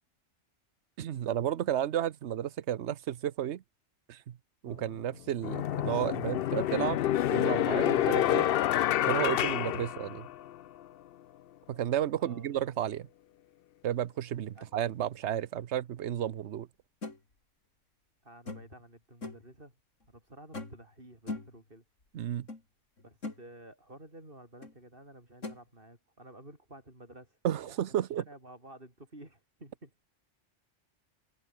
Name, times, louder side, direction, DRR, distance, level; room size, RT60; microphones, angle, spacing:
voice 1, 1.0-3.6 4.1-4.4 4.6-7.0 7.3-8.5 9.0-10.3 11.7-13.1 13.8-16.7 22.1-22.5 27.4-28.2, right 11 dB, 65° right, 1.1 m, -32 dB
sound 1, 4.7-4.8 5.4-10.6, left 12 dB, 60° left, 0.7 m, -28 dB
sound 2, 17.0-17.2 18.5-18.8 19.2-19.5 20.5-20.9 21.3-21.6 22.5-22.6 23.0-23.4 24.6-24.7 25.4-25.6, left 3 dB, 85° left, 4.3 m, -40 dB
voice 2, 18.2-19.7 20.1-21.8 23.0-29.9, right 1 dB, 45° right, 6.8 m, -52 dB
omnidirectional pair, 1.3 m